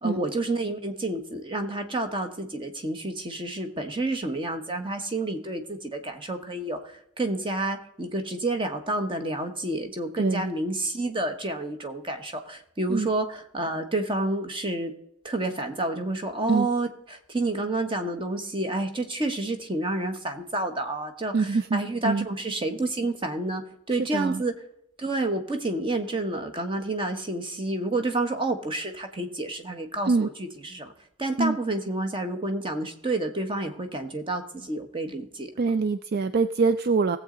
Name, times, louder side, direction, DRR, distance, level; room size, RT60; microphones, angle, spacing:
voice 1, 0.0-14.9 15.2-23.6 23.9-24.5 25.0-30.3 30.6-30.9 31.2-35.5, right 2 dB, 25° right, 7 dB, 1.2 m, -29 dB
voice 2, 10.2-10.5 12.9-13.1 16.5-16.7 21.3-22.3 24.0-24.4 30.1-30.3 31.4-31.6 35.6-37.2, right 4 dB, 50° right, 12 dB, 0.4 m, -24 dB
18.0 x 7.7 x 3.8 m, 0.74 s
head